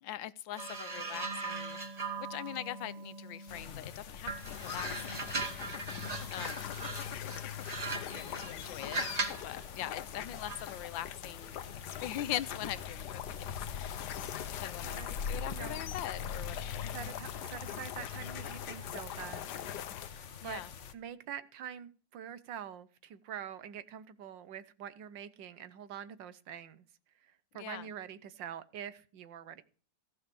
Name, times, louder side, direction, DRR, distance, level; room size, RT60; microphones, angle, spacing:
voice 1, 0.0-1.8 2.2-5.3 6.3-6.8 7.9-9.0 9.4-11.6 11.8-14.2 14.6-16.9 20.4-20.7 27.5-27.9, left 12 dB, 85° left, 1.5 m, -42 dB
sound 1, 0.6-3.8 4.2-9.5 10.5-10.7, right 3 dB, 25° right, 1.0 m, -39 dB
sound 2, 3.5-20.9, left 6 dB, 45° left, 1.2 m, -45 dB
sound 3, 4.4-20.1, left 10 dB, 65° left, 1.3 m, -42 dB
voice 2, 6.7-7.2 14.4-15.1 15.5-15.8 16.9-19.7 20.4-20.6 20.9-26.8 27.2-29.6, right 9 dB, 75° right, 1.6 m, -45 dB
15.0 x 5.7 x 6.9 m
omnidirectional pair, 2.0 m